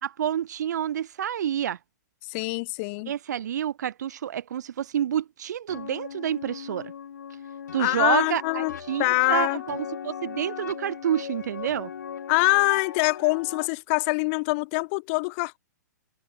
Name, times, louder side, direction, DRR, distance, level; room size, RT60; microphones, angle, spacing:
voice 1, 0.0-1.8 3.1-6.9 7.7-11.9, right 10 dB, 75° right, 1.6 m, -28 dB
voice 2, 2.3-3.1 7.8-9.6 12.3-15.6, left 30 dB, 45° left, 1.8 m, -24 dB
sound 1, 5.7-13.7, left 8 dB, 85° left, 2.9 m, -38 dB
hypercardioid pair, 135°, 9 cm